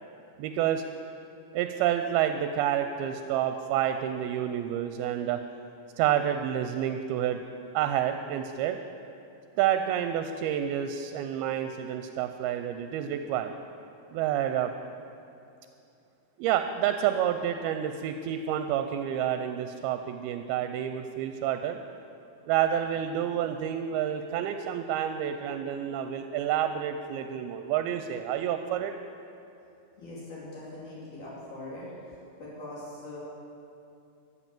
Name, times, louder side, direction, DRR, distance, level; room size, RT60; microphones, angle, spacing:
voice 1, 0.4-0.8 1.5-5.4 6.0-7.4 7.7-8.8 9.6-13.5 14.1-14.7 16.4-21.8 22.5-28.9, right 10 dB, 80° right, 8 dB, 2.4 m, -29 dB
voice 2, 30.0-31.9 32.4-33.2, left 2 dB, 55° left, -7 dB, 3.8 m, -41 dB
13.5 x 8.3 x 7.6 m, 2.7 s
omnidirectional pair, 4.5 m